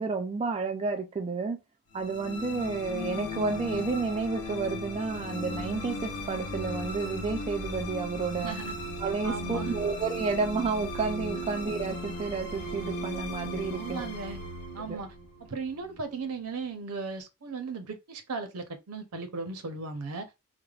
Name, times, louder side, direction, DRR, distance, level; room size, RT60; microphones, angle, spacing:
voice 1, 0.0-1.6 1.9-8.6 9.0-14.0 14.9-15.0, right 4 dB, 25° right, 0.3 m, -31 dB
sound 1, 1.9-16.3, left 1 dB, 90° left, 0.6 m, -37 dB
voice 2, 8.4-8.7 9.2-9.8 13.7-14.4 14.7-15.1 15.4-20.3, right 4 dB, 75° right, 0.7 m, -37 dB
3.2 x 2.1 x 2.3 m
head